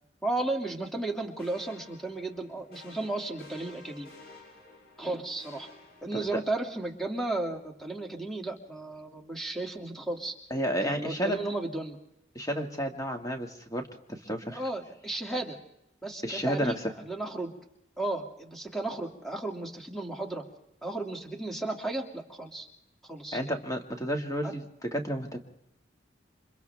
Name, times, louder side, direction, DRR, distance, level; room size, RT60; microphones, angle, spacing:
voice 1, 0.2-4.1 5.0-5.7 6.0-10.3 10.8-12.0 14.5-15.6 16.0-16.8 17.1-17.5 18.0-20.4 20.8-22.7 23.1-23.5 24.4-24.5, right 2 dB, ahead, 2 dB, 2.6 m, -34 dB
sound 1, 1.4-6.7, left 2 dB, 60° left, 7.0 m, -52 dB
voice 2, 10.5-11.4 12.4-14.6 16.2-16.7 23.3-24.6 24.9-25.4, equal, 20° left, 4 dB, 2.1 m, -31 dB
29.0 x 25.5 x 3.5 m, 0.81 s
head